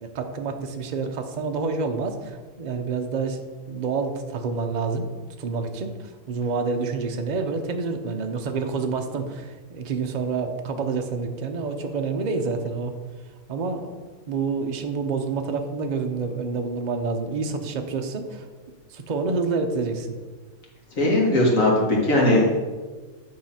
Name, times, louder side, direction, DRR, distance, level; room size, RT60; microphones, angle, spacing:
voice 1, 0.0-3.4 3.7-5.1 5.4-5.9 6.3-12.9 13.5-13.9 14.3-18.5 18.9-20.2, right 4 dB, 50° right, 5 dB, 0.5 m, -28 dB
voice 2, 21.0-22.6, left 1 dB, 55° left, -2 dB, 2.0 m, -19 dB
9.6 x 3.8 x 5.7 m, 1.4 s
omnidirectional pair, 1.7 m